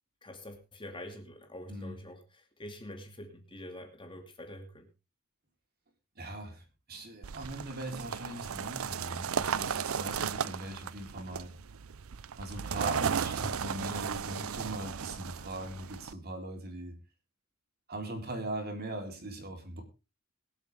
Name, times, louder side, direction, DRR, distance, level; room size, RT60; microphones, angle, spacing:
voice 1, 0.2-4.9, left 1 dB, 25° left, 4 dB, 2.5 m, -46 dB
voice 2, 6.2-11.5 12.4-17.0 17.9-19.8, right 1 dB, 45° right, 3 dB, 3.7 m, -40 dB
sound 1, 7.2-16.1, right 7 dB, 75° right, 0.6 m, -35 dB
23.0 x 8.0 x 3.5 m, 0.30 s
head